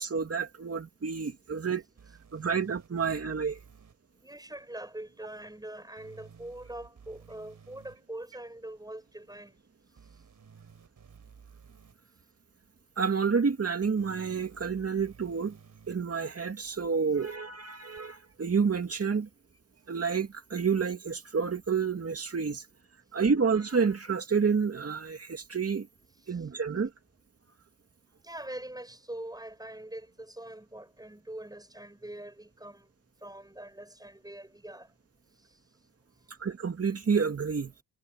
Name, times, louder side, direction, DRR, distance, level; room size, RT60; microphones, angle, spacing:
voice 1, 0.0-1.8 2.3-3.6 13.0-15.6 15.9-19.3 19.9-22.7 23.1-25.9 26.3-26.9 36.4-37.7, right 5 dB, 40° right, 2.4 m, -29 dB
sound 1, 2.0-3.9 6.0-8.0 10.0-11.9 14.0-16.0 18.0-18.1, right 6 dB, 55° right, 5.8 m, -54 dB
voice 2, 4.2-9.5 26.2-26.4 28.2-36.4, right 1 dB, 10° right, 7.7 m, -44 dB
cardioid pair, 95°, 37 cm